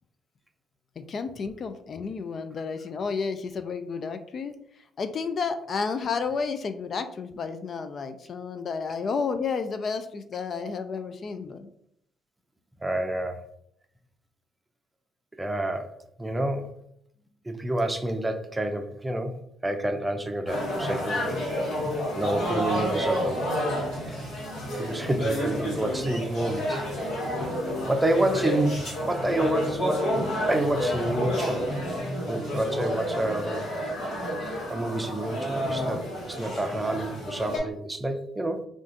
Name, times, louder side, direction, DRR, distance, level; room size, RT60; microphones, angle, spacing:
voice 1, 1.0-11.7 34.3-34.6, left 5 dB, 55° left, 9 dB, 0.3 m, -31 dB
voice 2, 12.8-13.4 15.4-16.8 17.5-21.3 22.1-23.5 24.1-24.2 24.8-26.8 27.9-30.1 30.5-31.7 32.3-33.7 34.7-38.7, right 1 dB, 15° right, 6 dB, 0.5 m, -28 dB
sound 1, 20.5-37.6, equal, 80° left, 1.4 m, -30 dB
2.5 x 2.4 x 3.7 m, 0.70 s
supercardioid pair, 60°, 0 cm